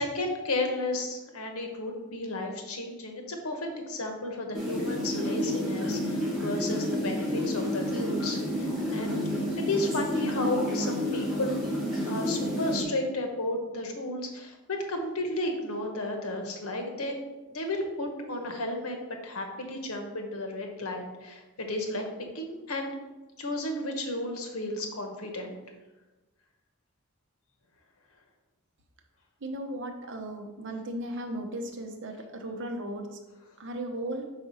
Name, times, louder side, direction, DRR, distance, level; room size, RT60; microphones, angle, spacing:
voice 1, 0.0-9.2 9.7-11.5 12.1-17.2 17.5-19.0 19.2-22.1 22.3-22.9 23.4-25.6, left 2 dB, 90° left, 3 dB, 1.1 m, -33 dB
sound 1, 4.5-12.8, equal, ahead, 2.0 m, -30 dB
voice 2, 29.4-33.2 33.6-34.2, right 1 dB, 60° right, 4 dB, 0.8 m, -36 dB
4.8 x 4.4 x 5.5 m, 1.1 s
head